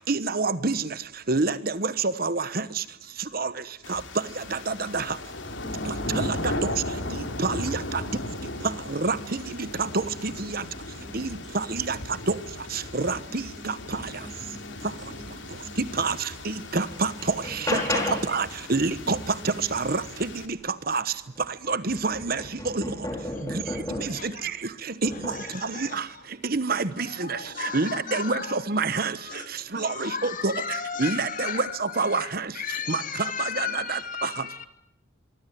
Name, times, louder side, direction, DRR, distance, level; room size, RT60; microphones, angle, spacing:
voice 1, 0.1-0.9 1.3-2.8 3.3-3.5 3.9-4.0 4.4-5.2 5.9-6.7 7.4-8.0 8.9-9.2 9.6-10.6 11.1-12.0 12.3-12.4 12.7-14.0 16.0-17.8 18.3-19.2 19.4-20.6 20.9-21.0 21.7-22.9 23.5-23.6 24.0-24.6 24.8-25.3 25.6-26.1 26.4-29.4 29.7-32.5 32.9-34.3, right 3 dB, 50° right, 14 dB, 1.1 m, -28 dB
sound 1, 3.8-20.5, left 1 dB, 70° left, 3.3 m, -37 dB
voice 2, 5.6-6.3 8.0-8.8 9.1-9.3 9.9-10.1 10.5-10.6 11.0-11.2 11.5-11.6 13.3-15.2 15.6-15.7 19.0-19.5 22.8-23.0 28.0-28.4, right 1 dB, ahead, 6 dB, 3.3 m, -42 dB
sound 2, 16.1-16.2 16.6-18.5 20.8-20.9 21.4-24.3 25.0-25.6 26.6-26.9, left 1 dB, 15° left, 5.1 m, -33 dB
voice 3, 17.7-18.2 23.3-23.6 24.1-24.5 25.1-26.3 27.0-28.6 28.9-29.0 29.2-34.7, left 6 dB, 40° left, 9 dB, 2.7 m, -35 dB
25.5 x 24.0 x 9.4 m, 0.75 s
head